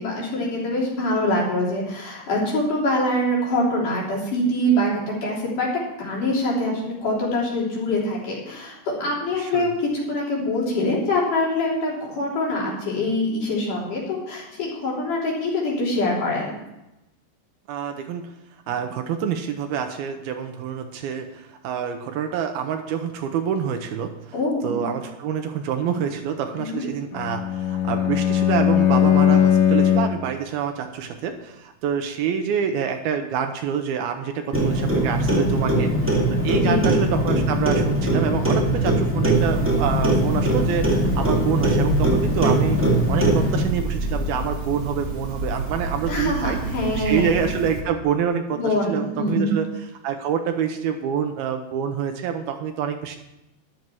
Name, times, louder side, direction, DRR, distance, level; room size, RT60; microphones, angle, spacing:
voice 1, 0.0-5.7 6.0-16.5 24.3-24.9 26.5-26.9 36.6-37.0 46.1-47.5 48.5-49.6, left 1 dB, 50° left, -4 dB, 4.7 m, -24 dB
voice 2, 9.4-9.7 17.7-18.2 18.7-24.3 24.6-42.8 43.1-46.6 46.9-53.2, right 8 dB, 75° right, 6 dB, 2.6 m, -27 dB
Bowed string instrument, 27.1-30.3, left 9 dB, 85° left, 1.2 m, -19 dB
Clock, 34.5-43.6, right 1 dB, 10° right, 0.6 m, -21 dB
sound 1, 39.3-47.8, right 2 dB, 45° right, 1.9 m, -29 dB
13.0 x 11.5 x 4.6 m, 0.94 s
omnidirectional pair, 4.7 m